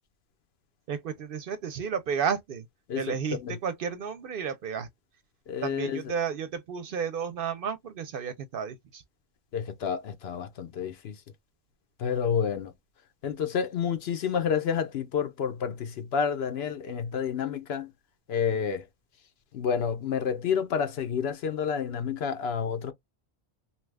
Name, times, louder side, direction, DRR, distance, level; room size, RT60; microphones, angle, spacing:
voice 1, 0.9-2.6 3.0-4.9 5.6-9.0, right 7 dB, 65° right, 0.7 m, -32 dB
voice 2, 2.9-3.6 5.5-6.1 9.5-11.2 12.0-12.7 13.2-17.9 18.3-18.9 19.5-22.9, left 7 dB, 70° left, 0.9 m, -29 dB
2.8 x 2.3 x 3.2 m
omnidirectional pair, 1.1 m